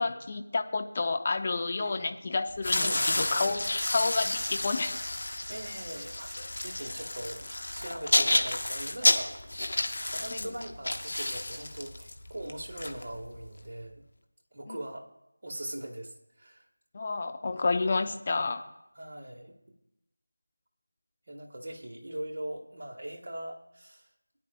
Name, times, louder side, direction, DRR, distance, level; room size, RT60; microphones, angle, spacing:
voice 1, 0.0-3.6 3.9-4.9 10.3-10.5 14.7-14.8 16.9-18.7, left 3 dB, 30° left, 6 dB, 0.7 m, -30 dB
voice 2, 1.8-2.2 2.7-3.6 5.5-9.6 10.1-14.0 14.5-15.1 15.4-16.7 18.0-18.1 18.9-19.5 21.3-24.1, right 1 dB, 45° right, 0 dB, 1.6 m, -41 dB
sound 1, 2.6-13.6, left 1 dB, 55° left, 1.2 m, -30 dB
19.0 x 10.0 x 2.3 m, 0.89 s
figure-of-eight pair, 170°, 0 cm